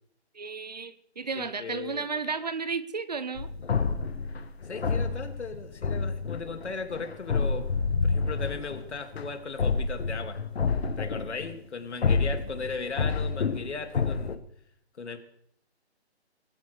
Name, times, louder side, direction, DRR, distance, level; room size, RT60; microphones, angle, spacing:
voice 1, 0.3-3.5, right 5 dB, 40° right, 0.6 m, -33 dB
voice 2, 1.3-2.1 4.7-7.7 8.0-10.4 11.0-14.4 15.0-15.2, left 4 dB, 80° left, 2.4 m, -37 dB
sound 1, 3.4-11.6 12.0-14.4, left 4 dB, 65° left, 1.2 m, -29 dB
22.5 x 14.5 x 3.3 m
hypercardioid pair, 175°, 34 cm